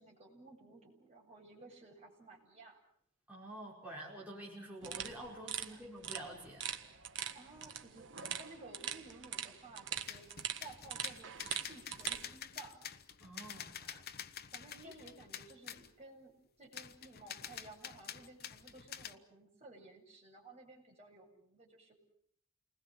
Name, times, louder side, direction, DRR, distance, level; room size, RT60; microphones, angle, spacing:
voice 1, 0.0-2.8 5.5-5.8 7.3-8.0 8.3-10.3 10.6-12.8 13.8-14.1 14.5-22.0, right 2 dB, 30° right, -1 dB, 7.8 m, -56 dB
voice 2, 3.3-6.7 13.2-13.7 14.8-14.9, right 1 dB, 5° right, -4 dB, 5.5 m, -48 dB
sound 1, 4.8-12.2, right 8 dB, 55° right, 1.6 m, -43 dB
sound 2, 9.9-15.9 16.7-19.1, left 9 dB, 45° left, 1.1 m, -48 dB
29.5 x 20.5 x 7.9 m, 0.64 s
head